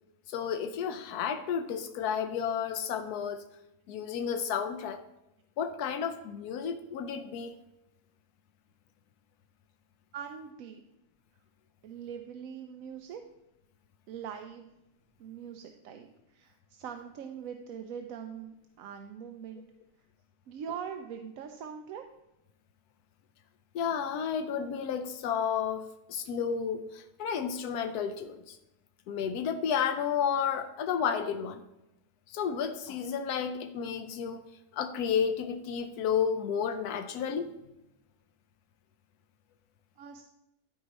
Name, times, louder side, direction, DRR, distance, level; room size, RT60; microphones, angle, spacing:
voice 1, 0.3-3.4 3.9-5.0 5.6-7.6 23.7-28.6 29.1-31.6 32.3-34.4 34.7-37.5, left 7 dB, 90° left, 7 dB, 1.1 m, -32 dB
voice 2, 10.1-10.8 11.8-13.2 14.1-14.7 15.2-19.6 20.5-22.0 40.0-40.2, right 7 dB, 70° right, 6 dB, 1.0 m, -42 dB
12.5 x 4.7 x 4.0 m, 0.90 s
omnidirectional pair, 1.6 m